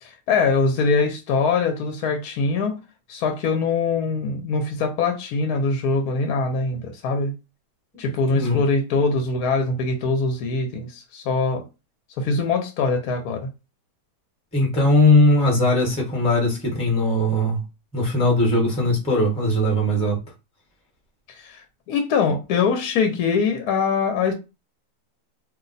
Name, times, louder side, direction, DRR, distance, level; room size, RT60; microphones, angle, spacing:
voice 1, 0.0-2.8 3.1-7.3 8.0-11.6 12.2-13.5 21.4-24.3, left 4 dB, 70° left, 1.0 m, -23 dB
voice 2, 8.2-8.6 14.5-17.6 17.9-20.2, left 1 dB, 5° left, 0.7 m, -19 dB
2.7 x 2.1 x 3.8 m
omnidirectional pair, 1.8 m